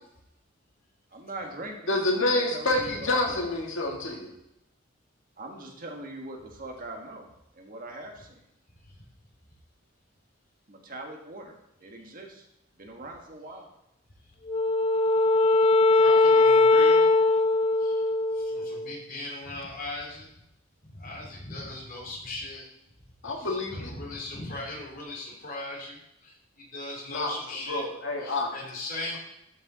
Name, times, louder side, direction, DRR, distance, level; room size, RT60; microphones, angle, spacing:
voice 1, 1.1-3.5 5.4-7.2 7.5-8.4 10.7-12.4 12.8-13.7 28.3-28.4, right 2 dB, 45° right, 1 dB, 1.5 m, -41 dB
voice 2, 1.9-4.3 23.2-23.9 27.1-27.3 27.7-28.5, left 2 dB, 75° left, 1 dB, 1.8 m, -27 dB
Wind instrument woodwind instrument, 14.5-18.9, left 3 dB, 30° left, 0.4 m, -21 dB
voice 3, 15.9-17.4 17.8-20.3 20.8-22.6 23.0-27.9 28.2-29.2, left 2 dB, 45° left, -3 dB, 3.2 m, -39 dB
12.0 x 5.6 x 4.0 m, 0.81 s
head